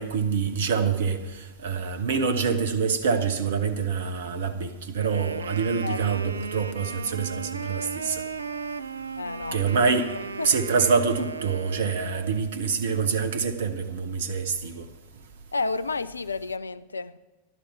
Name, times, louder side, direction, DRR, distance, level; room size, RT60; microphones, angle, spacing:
voice 1, 0.0-8.2 9.5-10.2 10.4-14.9, right 5 dB, 60° right, 0.9 m, -26 dB
Wind instrument woodwind instrument, 4.9-12.6, right 5 dB, 75° right, 0.4 m, -36 dB
voice 2, 5.8-6.3 9.2-9.8 10.4-10.5 15.5-17.2, left 3 dB, 80° left, 0.4 m, -31 dB
15.5 x 11.5 x 4.5 m
figure-of-eight pair, 90°, 0 cm